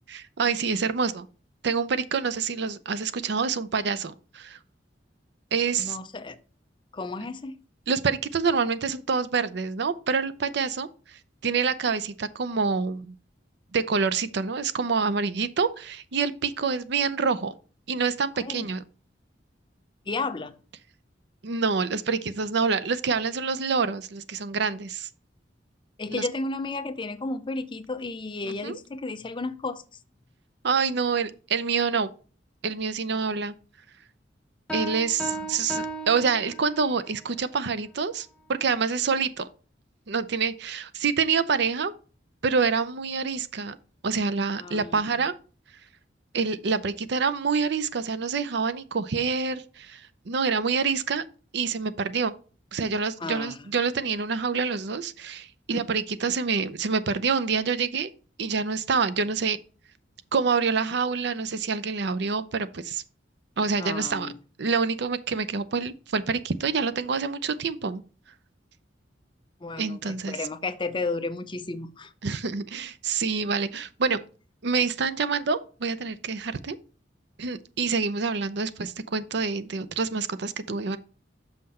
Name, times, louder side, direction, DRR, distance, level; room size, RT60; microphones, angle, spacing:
voice 1, 0.1-1.3 1.6-4.6 5.5-6.0 7.9-13.1 13.7-17.5 17.9-18.8 21.4-25.1 26.1-26.3 28.4-28.8 30.6-32.1 32.6-33.5 34.7-39.5 40.1-41.9 42.4-43.8 44.0-45.4 46.3-51.2 51.5-52.3 52.7-58.1 58.4-59.6 60.3-63.0 63.6-64.3 64.6-68.0 69.8-70.4 72.2-74.2 74.6-76.8 77.4-81.0, right 5 dB, 65° right, 0.6 m, -27 dB
voice 2, 5.8-6.4 6.9-7.6 18.4-18.7 20.1-20.6 26.0-29.8 44.6-45.0 53.2-53.6 63.8-64.4 69.6-72.1, left 3 dB, 25° left, 0.5 m, -33 dB
sound 1, 34.7-37.1, right 1 dB, 5° left, 0.9 m, -35 dB
6.5 x 5.7 x 4.2 m
head